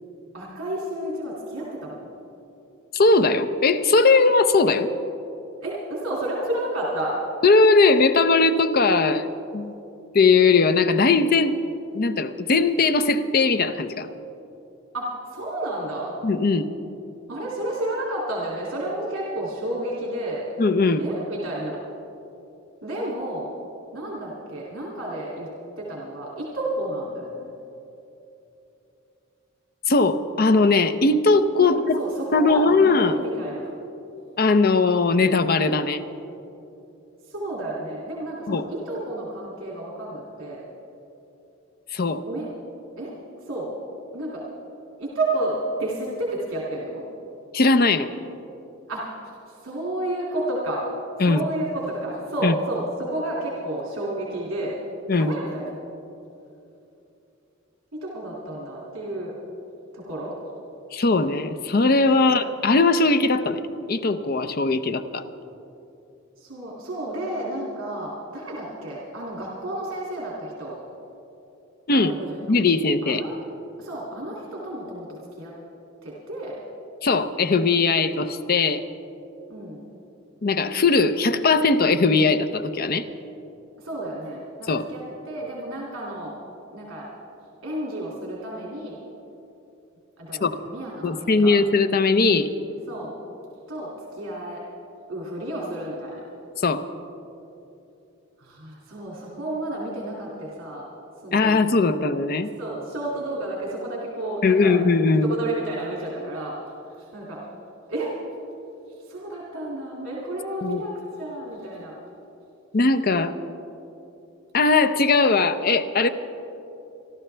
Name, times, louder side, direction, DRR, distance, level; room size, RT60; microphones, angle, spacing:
voice 1, 0.3-2.1 5.6-7.2 14.9-16.1 17.3-20.4 21.0-21.8 22.8-23.5 23.9-25.5 25.8-27.5 31.6-33.7 37.2-40.6 42.3-42.5 43.0-43.1 43.4-43.7 44.1-44.4 45.0-47.0 48.9-50.9 51.3-54.8 55.2-55.7 57.9-59.4 59.9-60.3 62.2-62.4 66.4-70.8 71.9-72.4 73.0-73.4 73.8-75.1 75.4-75.5 76.0-76.6 79.5-79.8 83.8-86.3 86.7-87.1 87.6-88.9 90.2-91.5 92.9-93.1 93.7-94.6 95.1-96.2 98.4-100.9 101.2-101.6 102.6-104.7 105.1-106.6 107.0-107.4 107.9-108.1 109.1-111.9, right 1 dB, 80° right, -5 dB, 2.6 m, -31 dB
voice 2, 2.9-4.9 7.4-9.3 9.5-9.7 10.1-11.6 11.9-14.1 16.2-16.7 20.6-21.0 29.9-32.0 32.3-33.2 34.4-36.0 38.5-38.6 41.9-42.2 47.5-48.1 51.2-51.4 52.4-52.5 55.1-55.3 60.9-63.6 63.9-65.2 71.9-72.1 72.5-73.2 77.0-78.8 80.4-83.0 84.7-84.8 90.4-90.5 91.0-92.5 96.6-96.8 101.3-102.5 104.4-105.3 110.6-110.8 112.7-113.3 114.5-116.1, left 3 dB, 45° left, 10 dB, 0.6 m, -19 dB
27.0 x 12.0 x 3.4 m, 2.9 s
head